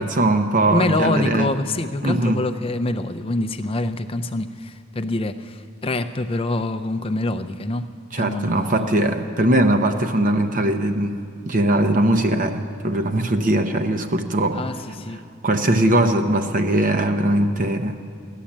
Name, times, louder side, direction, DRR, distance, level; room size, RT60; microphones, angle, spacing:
voice 1, 0.0-1.5 2.0-2.4 8.1-11.2 11.5-14.6 15.4-18.0, right 1 dB, 35° right, 6 dB, 0.7 m, -20 dB
voice 2, 0.7-7.9 8.2-9.1 14.5-15.2, left 2 dB, 25° left, 10 dB, 0.5 m, -26 dB
16.0 x 11.5 x 7.3 m, 2.3 s
head